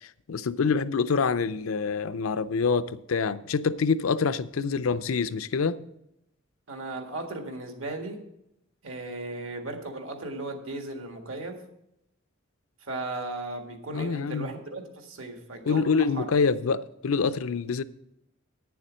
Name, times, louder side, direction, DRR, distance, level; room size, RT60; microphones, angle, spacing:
voice 1, 0.0-5.8 13.9-14.5 15.7-17.8, left 5 dB, 85° left, 0.5 m, -26 dB
voice 2, 6.7-8.3 8.8-11.6 12.8-16.3, right 2 dB, 80° right, 1.7 m, -36 dB
9.7 x 7.1 x 6.2 m
head